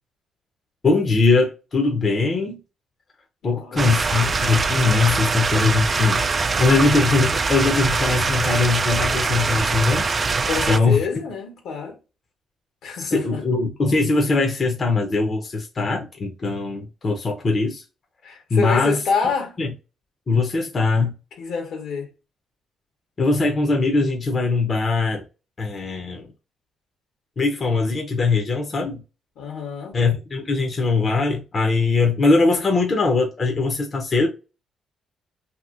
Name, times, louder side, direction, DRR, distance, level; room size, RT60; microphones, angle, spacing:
voice 1, 0.8-2.6 3.4-10.1 10.7-11.0 12.9-17.8 18.5-19.0 19.6-19.7 20.3-21.1 23.2-25.2 25.6-26.3 27.4-29.0 29.9-34.3, left 3 dB, 40° left, 0.7 m, -21 dB
voice 2, 3.4-4.2 10.4-12.0 12.8-13.4 18.2-19.5 21.4-22.1 29.4-30.0, left 5 dB, 80° left, 1.2 m, -27 dB
sound 1, 3.8-10.8, right 4 dB, 35° right, 0.3 m, -23 dB
2.9 x 2.7 x 2.4 m
cardioid pair, 90°, 0 cm